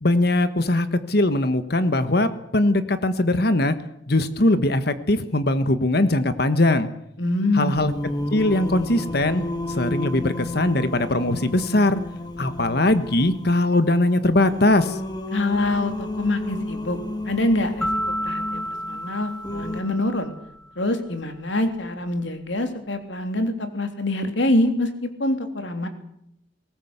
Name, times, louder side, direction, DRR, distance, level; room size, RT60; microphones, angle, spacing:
voice 1, 0.0-3.7 4.1-6.9 7.5-7.9 8.3-9.4 9.7-12.0 12.4-15.0, left 1 dB, 55° left, 11 dB, 1.4 m, -21 dB
voice 2, 7.2-7.7 15.3-17.0 17.2-17.9 18.2-20.3 20.7-25.9, left 1 dB, 75° left, 7 dB, 3.3 m, -25 dB
Singing, 7.7-19.8, left 1 dB, 20° left, 2.5 m, -32 dB
sound 1, 17.8-20.6, equal, 5° left, 1.4 m, -30 dB
22.5 x 19.0 x 8.1 m, 0.76 s
head